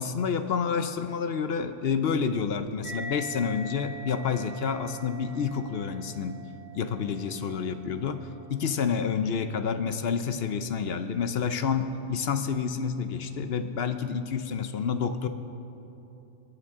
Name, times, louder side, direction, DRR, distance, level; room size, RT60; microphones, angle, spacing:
voice 1, 0.0-6.4 6.7-15.3, left 6 dB, 60° left, 9 dB, 0.8 m, -29 dB
sound 1, 2.8-9.7, right 2 dB, 25° left, 1.8 m, -44 dB
23.0 x 10.0 x 3.6 m, 2.9 s
omnidirectional pair, 1.3 m